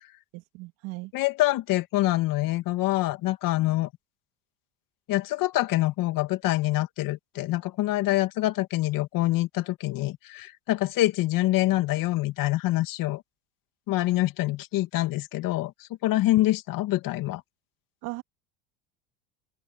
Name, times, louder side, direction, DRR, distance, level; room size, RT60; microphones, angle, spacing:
voice 1, 0.3-1.1 18.0-18.2, right 23 dB, 70° right, 3.1 m, -37 dB
voice 2, 1.1-3.9 5.1-13.2 13.9-17.4, left 16 dB, 60° left, 2.6 m, -25 dB
open air
supercardioid pair, 95°, 37 cm